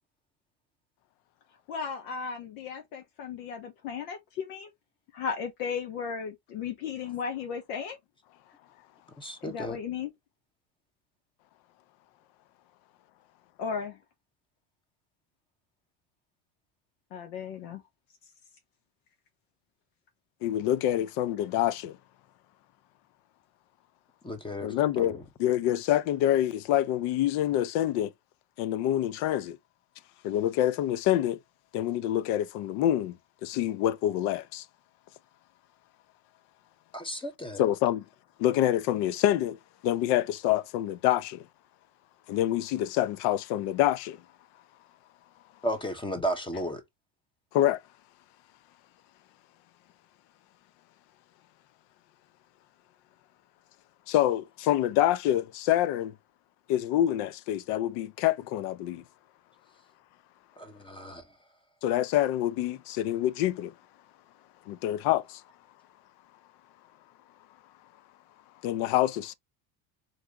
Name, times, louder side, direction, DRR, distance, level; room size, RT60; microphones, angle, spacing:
voice 1, 1.7-4.7 5.1-8.0 9.4-10.1 13.6-14.0 17.1-17.8, left 6 dB, 85° left, 1.1 m, -35 dB
voice 2, 9.2-9.8 24.2-25.2 36.9-37.6 45.6-46.8 60.6-61.2, equal, 10° left, 0.8 m, -34 dB
voice 3, 20.4-22.0 24.6-28.1 28.6-29.6 30.2-31.4 31.7-33.2 33.4-34.6 37.6-38.0 38.4-39.6 39.8-41.4 42.3-44.2 47.5-47.8 54.1-56.1 56.7-59.0 61.8-63.7 64.7-65.4 68.6-69.3, left 12 dB, 70° left, 0.6 m, -26 dB
4.0 x 2.8 x 3.5 m
cardioid pair, 135°, 42 cm